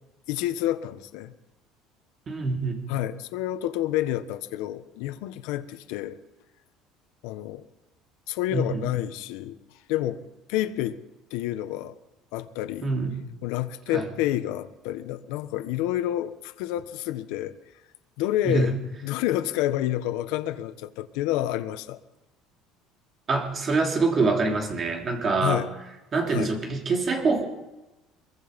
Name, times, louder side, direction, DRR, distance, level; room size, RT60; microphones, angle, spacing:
voice 1, 0.3-1.3 2.9-6.2 7.2-7.6 8.3-9.6 9.9-10.2 10.5-11.0 11.3-11.9 12.3-12.9 13.4-17.5 18.2-18.8 19.0-22.0 25.4-25.7 26.3-26.5, left 13 dB, 75° left, 10 dB, 1.2 m, -29 dB
voice 2, 2.3-2.8 8.5-8.8 12.8-13.2 13.9-14.0 18.4-18.7 23.3-25.6 26.1-27.4, right 3 dB, 25° right, 2 dB, 3.1 m, -25 dB
23.5 x 22.5 x 5.3 m, 1.0 s
cardioid pair, 175°, 0 cm